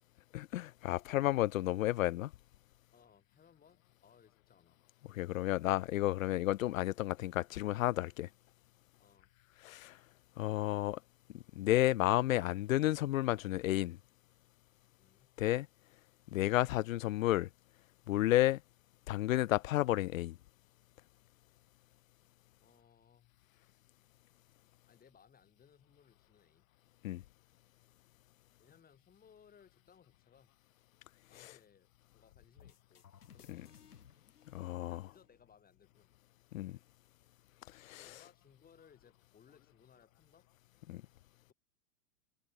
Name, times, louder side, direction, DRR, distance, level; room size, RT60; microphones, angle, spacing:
voice 1, 0.3-2.3 5.1-8.3 9.6-10.0 10.4-11.0 11.3-14.0 15.4-15.7 16.3-17.5 18.1-18.6 19.1-20.4 27.0-27.2 31.4-31.5 33.5-33.6 34.5-35.0 36.5-36.8 37.7-38.0 40.9-41.0, left 15 dB, 60° left, 0.8 m, -32 dB
voice 2, 2.9-4.8 9.0-9.3 15.0-15.3 22.6-23.4 24.8-26.7 28.6-30.6 31.3-33.1 33.3-34.0 34.9-36.1 37.9-40.5, left 7 dB, 20° left, 5.6 m, -65 dB
sound 1, 32.6-35.4, left 8 dB, 75° left, 2.7 m, -60 dB
figure-of-eight pair, 100°, 46 cm